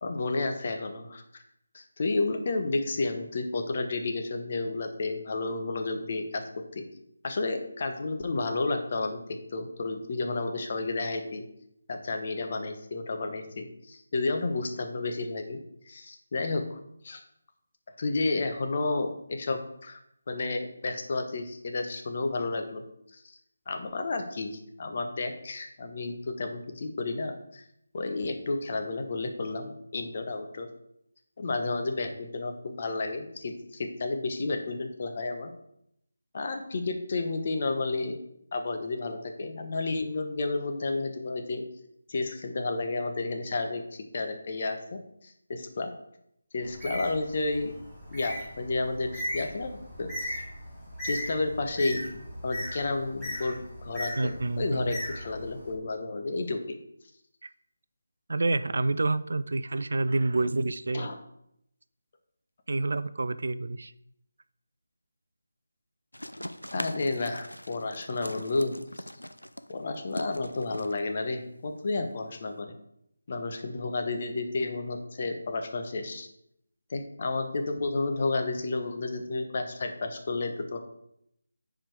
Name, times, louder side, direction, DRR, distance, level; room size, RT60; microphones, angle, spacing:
voice 1, 0.0-1.2 1.7-6.4 6.7-6.8 7.2-9.2 9.5-11.4 11.9-15.6 15.9-16.6 17.0-17.2 18.0-20.0 20.3-22.8 23.1-23.4 23.7-27.6 27.9-30.7 31.4-35.5 36.3-38.2 38.5-41.6 42.1-43.8 44.1-45.9 46.5-47.7 48.1-49.7 50.0-50.4 51.0-56.6 60.9-61.2 66.7-69.0 69.7-72.7 73.3-76.3 76.9-80.8, left 3 dB, 40° left, 5 dB, 1.0 m, -31 dB
Bird, 46.6-55.7, left 1 dB, 5° left, 3.3 m, -38 dB
voice 2, 54.2-55.0 57.4-57.5 58.3-61.1 62.7-63.9, right 2 dB, 55° right, 14 dB, 0.4 m, -28 dB
sound 1, 66.1-72.6, left 1 dB, 85° left, 0.5 m, -42 dB
7.2 x 5.0 x 4.7 m, 0.76 s
figure-of-eight pair, 155°, 0 cm